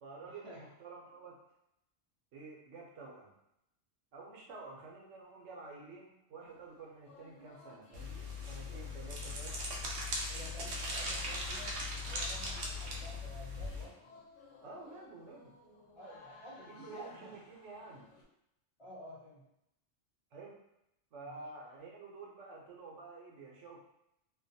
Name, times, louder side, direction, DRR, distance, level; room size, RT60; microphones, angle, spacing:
voice 1, 0.0-1.4 2.3-3.3 4.1-9.6 14.6-15.5 16.7-18.1 20.3-20.6 21.1-23.9, right 3 dB, 85° right, -2 dB, 1.0 m, -50 dB
sound 1, 6.4-18.2, left 3 dB, 80° left, 1.0 m, -58 dB
sound 2, 7.9-13.8, left 1 dB, 65° right, 0.7 m, -39 dB
voice 2, 10.3-14.1 16.0-17.3 18.8-19.4 21.2-21.5, equal, 35° left, -8 dB, 0.6 m, -52 dB
2.5 x 2.3 x 2.6 m, 0.82 s
omnidirectional pair, 1.2 m